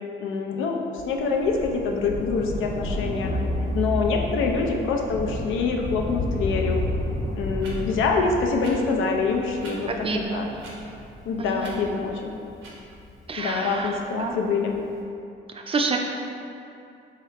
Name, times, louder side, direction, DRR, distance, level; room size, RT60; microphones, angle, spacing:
voice 1, 0.2-3.3 3.7-6.8 7.3-9.9 10.3-10.5 11.3-12.3 13.4-14.8, left 4 dB, 85° left, 2 dB, 0.5 m, -25 dB
Thunder, 1.0-13.8 14.7-14.8, left 1 dB, 50° left, 0.9 m, -33 dB
sound 1, 3.2-5.9, left 1 dB, 15° left, 0.7 m, -31 dB
sound 2, 6.7-6.8 7.6-7.7 8.6-8.7 9.6-9.7 10.6-10.8 11.6-11.8 12.6-12.7, right 3 dB, 90° right, 0.8 m, -43 dB
voice 2, 10.0-10.6 11.4-11.7 13.3-14.4 15.5-16.0, right 4 dB, 30° right, 2 dB, 0.4 m, -28 dB
3.7 x 2.8 x 3.2 m, 2.6 s
cardioid pair, 90°, 20 cm